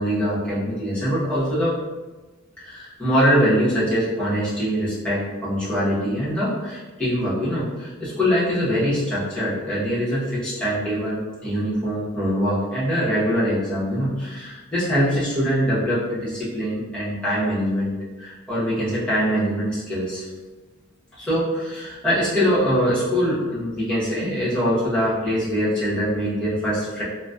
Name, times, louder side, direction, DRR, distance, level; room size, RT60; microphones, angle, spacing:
voice 1, 0.0-1.8 2.6-20.3 21.2-27.0, equal, 5° left, -11 dB, 1.2 m, -23 dB
3.9 x 2.3 x 2.4 m, 1.2 s
head